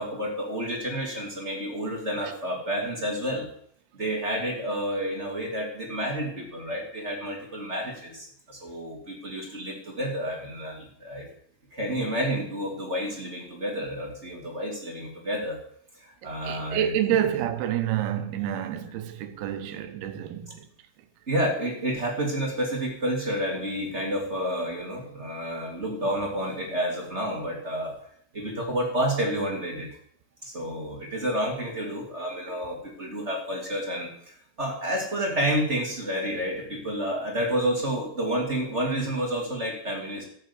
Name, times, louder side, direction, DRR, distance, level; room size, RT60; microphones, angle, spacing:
voice 1, 0.0-3.5 3.9-11.3 11.7-15.6 16.0-16.9 21.3-27.9 28.3-29.9 30.4-40.3, equal, 20° right, 2.0 m, -30 dB
voice 2, 16.2-20.7 32.5-32.6, right 10 dB, 75° right, 2.7 m, -28 dB
12.5 x 6.8 x 8.1 m
omnidirectional pair, 4.9 m